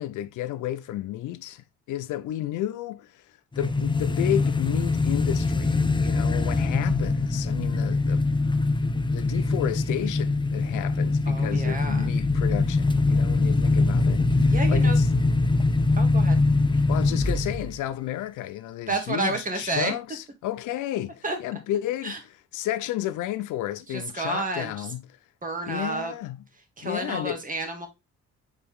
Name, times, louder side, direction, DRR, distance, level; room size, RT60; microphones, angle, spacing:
voice 1, 0.0-3.3 3.6-8.3 9.1-15.1 16.9-22.1 22.5-25.1 25.7-26.4 26.8-27.4, left 13 dB, 85° left, 0.6 m, -32 dB
sound 1, 3.6-17.8, left 3 dB, 15° left, 0.7 m, -23 dB
voice 2, 11.3-12.1 14.5-15.0 16.0-16.4 18.9-19.9 21.2-21.4 22.0-22.2 23.9-24.9 25.4-26.1 26.8-27.9, right 2 dB, 25° right, 2.1 m, -30 dB
6.7 x 4.4 x 3.5 m
cardioid pair, 90°, 30 cm